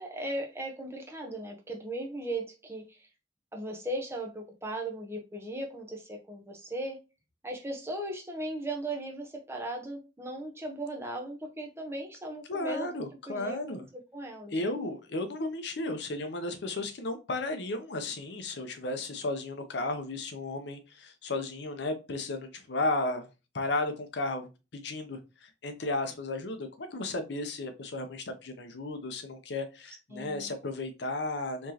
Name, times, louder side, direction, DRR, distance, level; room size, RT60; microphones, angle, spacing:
voice 1, 0.0-3.1 3.5-7.0 7.4-12.9 13.3-13.8 14.1-14.7 30.1-30.5, right 1 dB, 15° right, 1 dB, 0.8 m, -37 dB
voice 2, 12.5-13.8 14.5-23.3 23.5-31.7, left 2 dB, 65° left, 8 dB, 0.7 m, -34 dB
4.4 x 3.1 x 2.8 m, 0.28 s
head